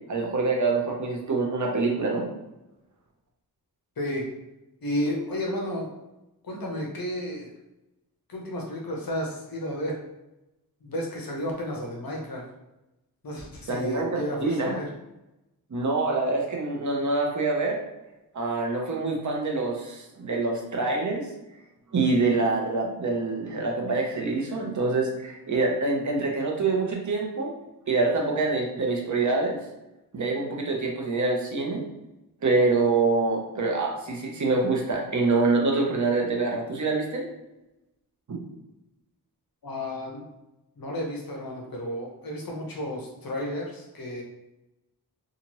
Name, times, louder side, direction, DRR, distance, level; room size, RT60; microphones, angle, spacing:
voice 1, 0.1-2.3 13.7-14.8 15.7-17.8 18.3-21.3 21.9-27.5 27.9-29.6 30.1-31.8 32.4-37.2 38.3-38.4, right 3 dB, 50° right, 0 dB, 0.7 m, -25 dB
voice 2, 4.0-4.3 4.8-5.9 6.4-7.5 8.3-10.0 10.8-12.4 13.2-14.9 39.6-40.3 40.8-44.2, left 1 dB, 65° left, -2 dB, 0.8 m, -32 dB
2.9 x 2.4 x 2.9 m, 0.95 s
wide cardioid pair, 115°, 38 cm